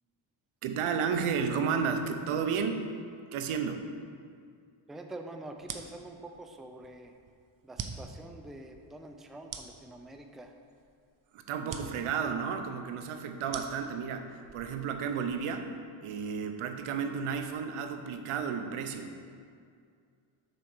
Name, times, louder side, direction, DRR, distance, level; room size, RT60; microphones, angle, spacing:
voice 1, 0.6-2.9 3.3-3.8 11.3-15.7 16.0-19.1, right 6 dB, 90° right, 6 dB, 0.8 m, -32 dB
voice 2, 4.9-7.1 7.6-10.5, right 2 dB, ahead, 5 dB, 0.4 m, -46 dB
sound 1, 5.6-15.5, right 6 dB, 45° right, 0.7 m, -46 dB
6.6 x 4.4 x 6.5 m, 2.2 s
cardioid pair, 100°, 49 cm